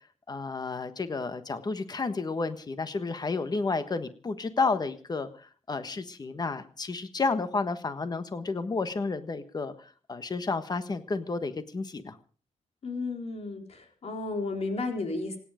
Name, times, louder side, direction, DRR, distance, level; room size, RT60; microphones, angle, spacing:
voice 1, 0.3-12.2, left 4 dB, 40° left, 10 dB, 1.4 m, -31 dB
voice 2, 12.8-15.4, left 3 dB, 70° left, 4 dB, 4.2 m, -33 dB
27.0 x 10.0 x 5.1 m, 0.42 s
wide cardioid pair, 120°, 11 cm